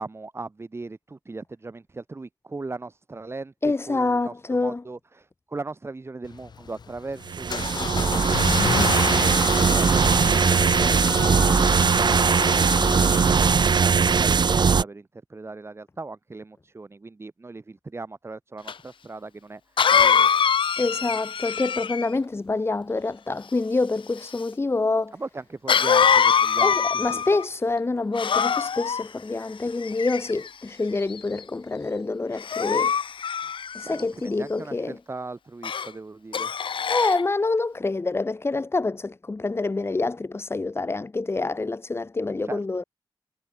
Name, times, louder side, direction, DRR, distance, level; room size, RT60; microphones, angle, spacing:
voice 1, 0.0-12.4 12.7-20.3 25.1-27.2 33.8-36.5 42.4-42.6, right 3 dB, 30° right, 7.6 m, -38 dB
voice 2, 3.6-4.8 20.8-25.1 26.6-32.9 33.7-35.0 36.9-42.8, left 3 dB, 30° left, 7.2 m, -26 dB
Car / Engine starting, 6.2-14.4, left 5 dB, 60° left, 1.2 m, -30 dB
sound 1, 7.3-14.8, right 5 dB, 60° right, 2.2 m, -20 dB
Cough, 18.7-18.8 19.8-22.1 25.7-27.4 28.1-29.0 29.8-30.5 31.1-31.4 32.4-34.0 35.6-35.9 36.3-37.2, left 7 dB, 85° left, 1.8 m, -23 dB
wide cardioid pair, 140°, 8 cm